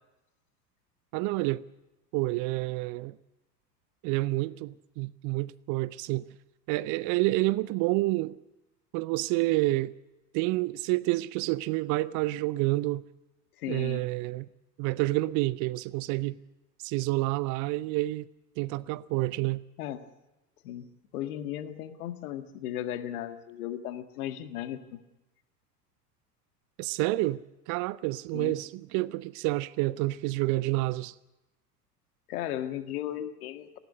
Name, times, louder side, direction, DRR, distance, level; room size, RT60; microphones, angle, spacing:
voice 1, 1.1-1.6 2.1-3.2 4.0-6.3 6.7-8.4 8.9-9.9 10.3-13.0 13.7-14.5 14.8-16.4 16.8-18.3 18.6-19.6 26.8-27.4 27.7-31.1, right 19 dB, 40° right, 0.6 m, -28 dB
voice 2, 13.6-14.1 19.8-20.0 20.6-20.9 21.1-25.0 28.3-28.6 32.3-33.8, left 11 dB, 60° left, 1.8 m, -36 dB
19.0 x 15.0 x 9.7 m
figure-of-eight pair, 85°, 49 cm